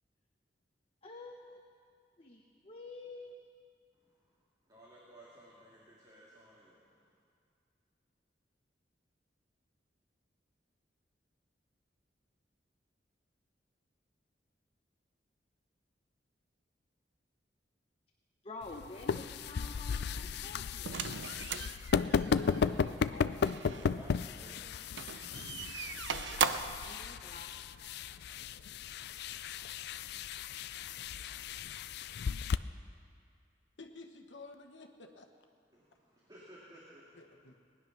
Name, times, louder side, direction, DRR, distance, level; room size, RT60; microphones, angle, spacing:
voice 1, 1.0-1.7 2.2-3.5 18.4-21.0 26.7-27.5, left 2 dB, 30° left, 1 dB, 0.9 m, -49 dB
voice 2, 3.9-7.1 23.6-25.6 35.7-37.5, equal, 25° right, -6 dB, 2.2 m, -57 dB
sound 1, 18.6-32.6, left 6 dB, 65° left, 0.4 m, -35 dB
sound 2, 20.8-23.9 24.9-26.9, right 6 dB, 75° right, 0.6 m, -38 dB
voice 3, 22.3-23.8 33.8-35.3 37.1-37.6, left 2 dB, 85° left, 4 dB, 1.2 m, -51 dB
19.5 x 10.0 x 6.0 m, 2.3 s
head